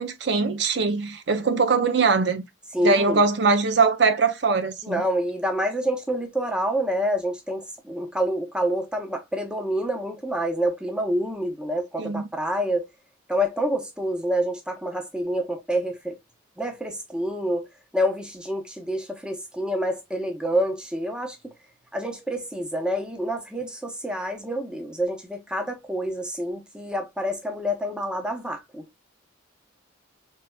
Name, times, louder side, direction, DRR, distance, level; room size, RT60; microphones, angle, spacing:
voice 1, 0.0-2.4 2.8-5.0 12.0-12.2, right 4 dB, 60° right, 0.6 m, -22 dB
voice 2, 2.7-3.2 4.8-12.9 13.3-16.2 16.6-17.7 17.9-21.5 21.9-28.9, equal, 5° right, 0.8 m, -27 dB
4.5 x 3.3 x 2.3 m
head